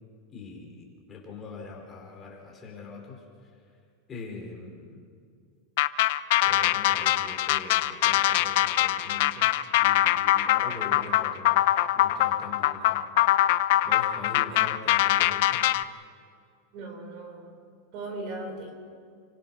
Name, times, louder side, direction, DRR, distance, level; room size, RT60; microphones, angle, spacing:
voice 1, 0.3-3.6 4.1-5.1 6.5-9.5 9.8-11.6 11.9-13.0 13.8-15.6, left 4 dB, 15° left, -1 dB, 4.7 m, -42 dB
sound 1, 5.8-15.8, left 14 dB, 55° left, 0.7 m, -23 dB
voice 2, 16.7-17.6 17.9-18.7, right 2 dB, 40° right, 4 dB, 5.6 m, -38 dB
29.5 x 24.5 x 6.4 m, 2.2 s
supercardioid pair, 170°, 0 cm